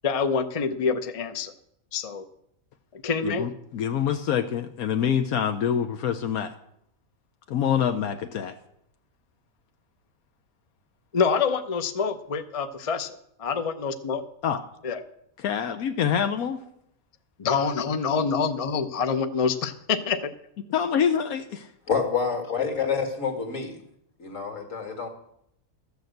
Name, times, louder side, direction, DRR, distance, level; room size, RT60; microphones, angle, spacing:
voice 1, 0.0-1.5 1.9-2.2 2.9-3.5 11.1-14.2 14.8-15.0 17.4-20.3, left 5 dB, 35° left, 8 dB, 0.6 m, -26 dB
voice 2, 3.2-6.5 7.5-8.5 14.4-14.6 15.4-16.6 20.7-21.7, left 8 dB, 80° left, 7 dB, 1.2 m, -26 dB
voice 3, 21.9-23.8 24.2-25.1, left 6 dB, 60° left, 4 dB, 2.3 m, -27 dB
13.0 x 6.9 x 7.9 m, 0.75 s
omnidirectional pair, 1.5 m